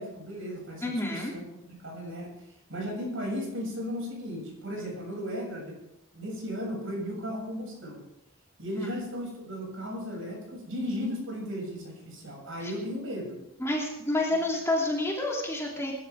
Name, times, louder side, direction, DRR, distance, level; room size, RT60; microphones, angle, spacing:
voice 1, 0.0-2.4 2.7-5.8 6.1-8.0 8.6-13.4 14.3-14.4, equal, 60° right, 0 dB, 7.3 m, -35 dB
voice 2, 0.8-1.3 4.8-4.9 8.8-8.9 12.6-12.7 13.6-15.9, left 1 dB, 10° left, -2 dB, 2.9 m, -29 dB
23.5 x 12.0 x 3.7 m, 0.86 s
head